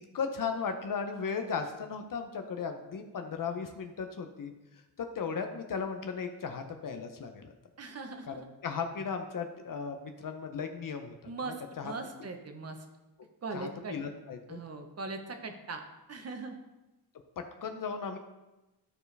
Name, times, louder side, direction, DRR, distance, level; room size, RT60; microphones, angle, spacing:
voice 1, 0.1-4.5 5.0-7.4 8.3-11.3 11.8-11.9 13.5-14.6 17.4-18.2, left 5 dB, 50° left, 6 dB, 0.7 m, -36 dB
voice 2, 7.8-8.4 11.3-12.8 13.4-14.0 14.5-15.8 16.1-16.6, right 3 dB, 35° right, 5 dB, 1.0 m, -40 dB
13.0 x 4.7 x 3.3 m, 1.0 s
wide cardioid pair, 140°, 42 cm